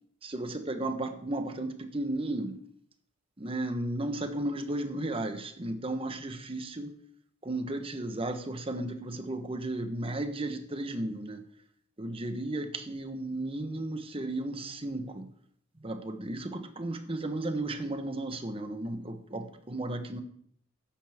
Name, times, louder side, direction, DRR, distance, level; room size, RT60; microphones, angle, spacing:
voice 1, 0.2-2.6 3.4-6.9 7.4-11.4 12.0-15.3 15.8-20.2, right 1 dB, 30° right, 7 dB, 1.1 m, -34 dB
14.0 x 10.5 x 3.6 m, 0.65 s
head